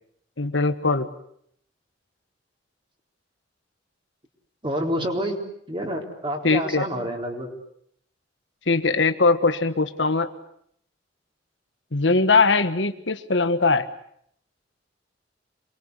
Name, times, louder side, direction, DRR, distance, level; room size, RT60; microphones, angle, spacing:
voice 1, 0.4-1.1 6.4-6.8 8.7-10.3 11.9-13.9, left 3 dB, 75° left, 10 dB, 1.5 m, -21 dB
voice 2, 4.6-5.4 5.7-7.5, equal, 30° right, 3 dB, 4.1 m, -28 dB
27.0 x 22.0 x 8.3 m, 0.69 s
head